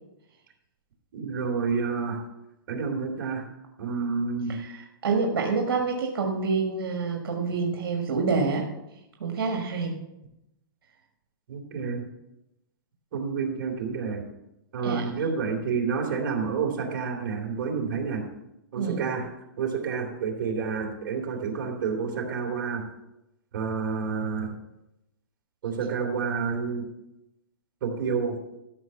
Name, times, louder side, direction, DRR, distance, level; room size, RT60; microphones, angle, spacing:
voice 1, 1.1-2.2 2.7-3.4 3.8-4.6 11.5-12.0 13.1-14.2 14.7-18.2 18.7-19.2 19.6-22.8 23.5-24.5 25.6-26.8 27.8-28.4, right 5 dB, 60° right, 0 dB, 3.2 m, -29 dB
voice 2, 4.5-8.7 9.2-10.0 14.8-15.1 18.8-19.0, right 4 dB, 85° right, 1 dB, 1.7 m, -27 dB
13.0 x 6.0 x 5.7 m, 0.90 s
hypercardioid pair, 150°, 12 cm